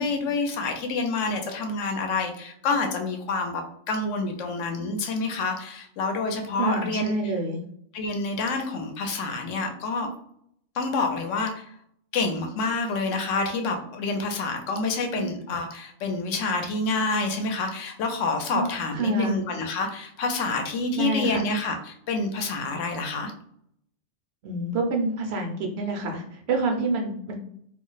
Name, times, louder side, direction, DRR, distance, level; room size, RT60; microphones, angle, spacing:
voice 1, 0.0-7.1 7.9-10.1 10.8-11.7 12.1-23.3, left 3 dB, 75° left, 4 dB, 0.9 m, -28 dB
voice 2, 6.6-7.6 15.2-15.3 18.5-18.7 18.9-19.4 20.9-21.4 24.4-27.4, right 3 dB, 65° right, 2 dB, 0.7 m, -27 dB
2.4 x 2.0 x 3.8 m, 0.69 s
omnidirectional pair, 1.3 m